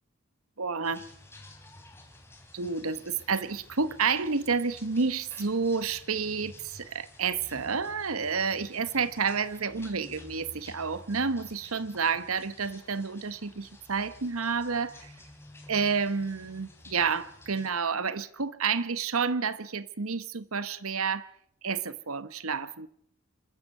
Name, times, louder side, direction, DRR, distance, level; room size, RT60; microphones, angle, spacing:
voice 1, 0.6-1.0 2.5-15.1 15.7-21.3 21.6-22.9, right 5 dB, 85° right, 15 dB, 1.1 m, -30 dB
sound 1, 0.8-17.7, left 1 dB, 10° left, 3.2 m, -52 dB
26.5 x 13.0 x 8.2 m, 0.65 s
head